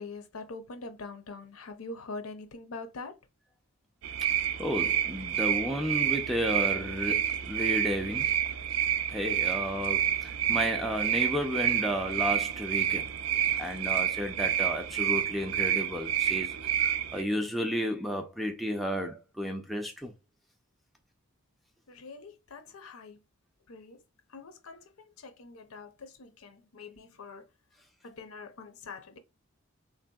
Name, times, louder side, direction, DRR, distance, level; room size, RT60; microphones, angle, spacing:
voice 1, 0.0-3.1 21.9-23.2 23.7-24.0 24.3-27.5 28.0-29.2, left 3 dB, 80° left, 0.6 m, -44 dB
sound 1, 4.0-17.2, right 10 dB, 80° right, 0.4 m, -29 dB
voice 2, 4.3-8.4 9.1-13.1 13.6-20.1, equal, ahead, 0.3 m, -33 dB
3.4 x 2.6 x 2.2 m
head